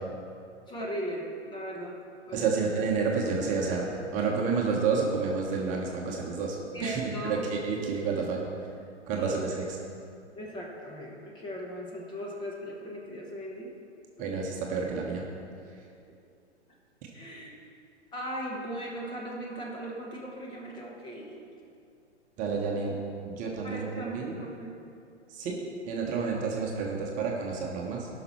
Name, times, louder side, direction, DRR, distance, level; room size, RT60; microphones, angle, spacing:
voice 1, 0.7-2.0 2.3-2.5 6.7-7.5 9.2-9.6 10.3-13.7 17.1-17.5 18.1-21.4 23.6-24.8, equal, 15° left, -2 dB, 1.2 m, -38 dB
voice 2, 2.3-8.4 9.1-9.6 14.2-15.3 22.4-23.0 23.2-24.3 25.3-25.6 25.9-28.1, right 5 dB, 20° right, -1 dB, 1.2 m, -30 dB
17.0 x 6.0 x 4.5 m, 2.4 s
figure-of-eight pair, 115°, 35 cm